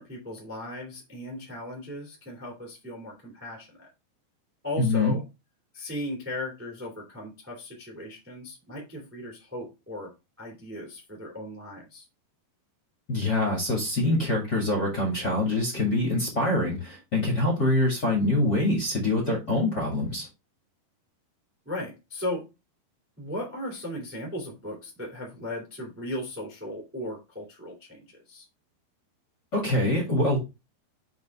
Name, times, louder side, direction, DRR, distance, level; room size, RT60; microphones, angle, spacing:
voice 1, 0.0-3.9 4.6-5.2 5.7-10.1 10.4-12.0 21.6-22.5 23.2-28.5, left 1 dB, 10° right, -2 dB, 0.6 m, -37 dB
voice 2, 4.8-5.1 13.1-20.3 29.5-30.4, left 2 dB, 40° left, 0 dB, 1.4 m, -25 dB
5.8 x 5.3 x 3.4 m, 0.25 s
omnidirectional pair, 5.2 m